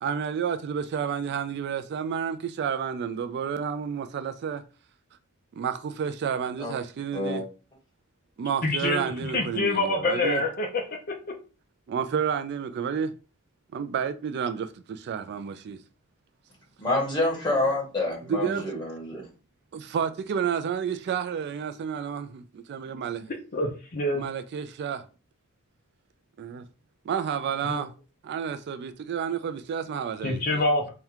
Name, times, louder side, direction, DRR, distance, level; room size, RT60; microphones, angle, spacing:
voice 1, 0.0-4.6 5.6-7.4 8.4-10.4 11.9-13.2 13.7-15.8 18.2-18.7 19.7-22.3 22.7-23.3 24.1-25.1 26.4-26.6 27.1-27.9 28.2-30.6, right 7 dB, 50° right, 0.3 m, -30 dB
voice 2, 7.1-7.4 16.8-19.2, left 2 dB, 20° left, 1.6 m, -27 dB
voice 3, 8.6-9.0 9.3-10.7 23.5-24.2 27.6-27.8 30.2-30.9, left 2 dB, 40° left, 0.6 m, -26 dB
3.5 x 2.2 x 4.4 m
head